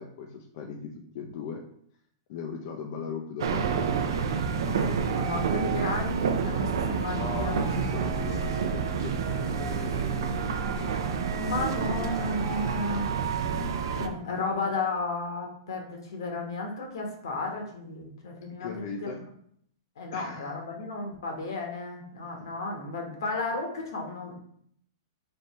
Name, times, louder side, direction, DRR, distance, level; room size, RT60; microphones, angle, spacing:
voice 1, 0.0-1.6 2.3-3.9 4.9-5.1 7.1-12.2 13.5-13.8 14.1-14.2 18.6-19.2 20.1-20.5, left 6 dB, 50° left, 2 dB, 0.5 m, -39 dB
sound 1, 3.4-14.1, right 6 dB, 75° right, 0.5 m, -29 dB
voice 2, 4.7-7.9 11.4-13.1 14.0-18.7 19.0-19.1 20.0-24.4, left 3 dB, 80° left, 1 dB, 1.3 m, -33 dB
3.4 x 2.7 x 4.2 m, 0.66 s
supercardioid pair, 155°, 2 cm